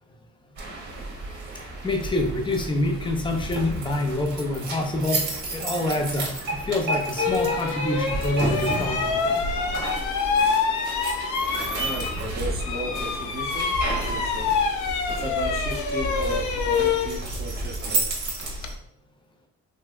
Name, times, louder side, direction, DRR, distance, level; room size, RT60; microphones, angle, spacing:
sound 1, 0.6-18.7, right 2 dB, 70° right, 1.2 m, -32 dB
voice 1, 1.8-9.2, left 1 dB, 15° left, 4 dB, 0.6 m, -26 dB
sound 2, 6.5-6.6 7.2-12.3 12.6-18.7, left 5 dB, 75° left, 0.5 m, -26 dB
voice 2, 11.6-14.5 15.2-18.3, right 1 dB, 30° right, 1 dB, 0.7 m, -35 dB
3.3 x 2.7 x 2.3 m, 0.70 s
cardioid pair, 90°, 30 cm